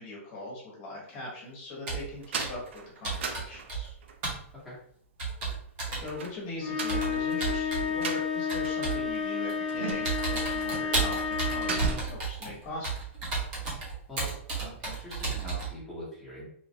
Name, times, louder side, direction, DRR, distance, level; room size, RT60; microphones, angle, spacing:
voice 1, 0.0-2.6 2.9-3.9 6.0-12.9, left 1 dB, 25° left, -4 dB, 1.0 m, -41 dB
Computer keyboard, 1.9-2.1 2.4-2.7 3.0-4.0 4.2-4.4 5.2-6.1 6.9-7.9 8.5-9.0 9.5-9.7 10.0-15.7, right 4 dB, 30° right, 0.9 m, -33 dB
sound 1, 2.2-4.2 6.0-8.9 9.1-9.2 9.7-10.3 10.7-11.0 11.3-12.3, right 4 dB, 60° right, 0.4 m, -37 dB
sound 2, 6.6-12.0, left 6 dB, 40° left, 0.6 m, -31 dB
voice 2, 14.6-16.5, left 1 dB, ahead, -10 dB, 1.0 m, -42 dB
3.0 x 2.3 x 2.7 m, 0.64 s
hypercardioid pair, 175°, 7 cm